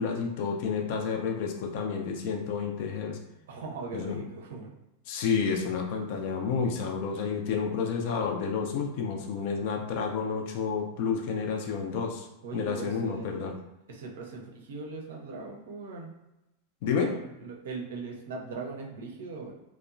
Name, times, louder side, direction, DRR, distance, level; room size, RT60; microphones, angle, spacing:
voice 1, 0.0-3.2 3.9-4.2 5.1-12.3 12.5-13.5 16.8-17.1, left 5 dB, 50° left, 2 dB, 0.4 m, -30 dB
voice 2, 3.5-4.7 12.4-13.5 13.9-16.1 17.0-19.5, right 3 dB, 60° right, 0 dB, 0.5 m, -40 dB
2.8 x 2.0 x 2.4 m, 0.92 s
figure-of-eight pair, 90°, 0 cm